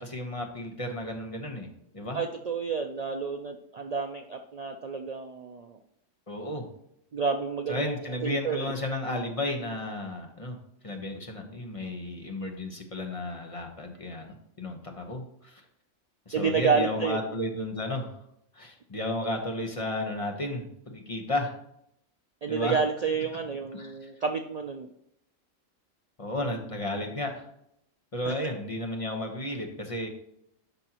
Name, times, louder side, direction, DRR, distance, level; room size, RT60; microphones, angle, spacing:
voice 1, 0.0-1.7 1.9-2.2 6.3-6.7 7.7-10.6 10.8-15.6 16.3-18.1 18.5-21.5 22.5-22.8 23.7-24.1 26.2-27.5 28.1-30.1, left 1 dB, 30° left, 2 dB, 1.0 m, -33 dB
voice 2, 2.1-5.8 7.1-8.7 16.3-17.2 22.4-24.9 28.2-28.5, right 5 dB, 70° right, 5 dB, 0.3 m, -30 dB
12.0 x 5.4 x 2.9 m, 0.75 s
omnidirectional pair, 1.4 m